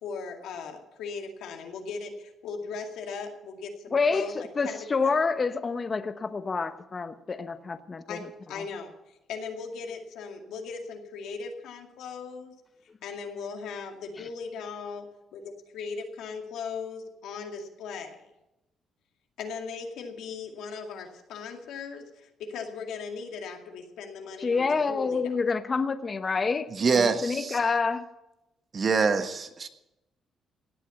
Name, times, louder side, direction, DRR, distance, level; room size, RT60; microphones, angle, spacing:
voice 1, 0.0-5.1 8.1-8.9 9.3-12.5 13.0-18.3 19.4-25.2, left 5 dB, 85° left, 3 dB, 2.2 m, -38 dB
voice 2, 3.9-8.6 14.2-14.3 24.4-26.7 26.9-28.0, left 4 dB, 35° left, 11 dB, 0.9 m, -28 dB
voice 3, 26.8-27.6 28.7-29.7, right 5 dB, 45° right, 8 dB, 1.4 m, -25 dB
17.0 x 8.5 x 7.0 m, 0.92 s
cardioid pair, 90°, 0 cm